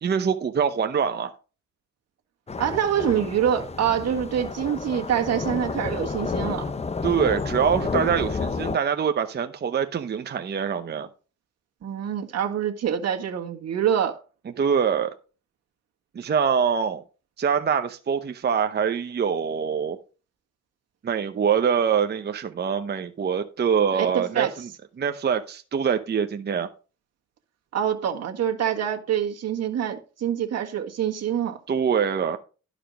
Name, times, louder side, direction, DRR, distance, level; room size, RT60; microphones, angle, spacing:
voice 1, 0.0-1.3 7.0-11.1 14.6-15.1 16.1-17.0 17.4-20.0 21.0-24.7 25.0-26.7 31.7-32.4, right 7 dB, 35° right, 0.8 m, -24 dB
sound 1, 2.5-8.8, left 4 dB, 20° left, 0.7 m, -30 dB
voice 2, 2.6-6.7 11.8-14.2 23.9-24.5 27.7-31.6, right 9 dB, 55° right, 1.7 m, -25 dB
11.5 x 5.0 x 5.1 m
cardioid pair, 90°, 30 cm